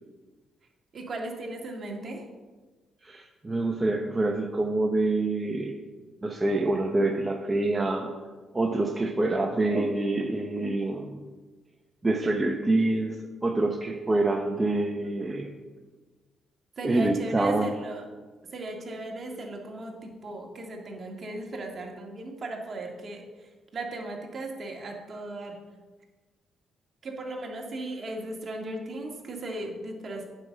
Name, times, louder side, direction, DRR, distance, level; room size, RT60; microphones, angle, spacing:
voice 1, 0.9-2.2 14.6-14.7 16.8-18.0 18.5-25.6 27.0-30.3, right 2 dB, 40° right, 0 dB, 2.0 m, -37 dB
voice 2, 3.0-5.8 6.2-8.1 8.5-11.2 12.0-15.5 16.8-17.7, right 2 dB, 20° right, 2 dB, 0.8 m, -26 dB
9.2 x 5.3 x 6.7 m, 1.3 s
cardioid pair, 90°, 0 cm